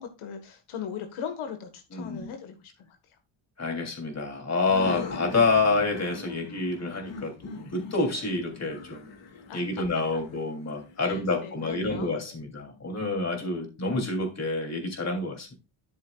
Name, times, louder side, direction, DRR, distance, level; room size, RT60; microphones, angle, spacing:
voice 1, 0.0-2.6 9.5-9.6 11.0-12.1, left 7 dB, 90° left, 5 dB, 1.7 m, -38 dB
voice 2, 1.9-2.3 3.6-9.1 9.5-15.5, left 3 dB, 35° left, 2 dB, 3.2 m, -28 dB
sound 1, 4.5-12.1, left 3 dB, 65° left, 2.1 m, -42 dB
12.5 x 6.8 x 2.4 m, 0.28 s
cardioid pair, 105°, 48 cm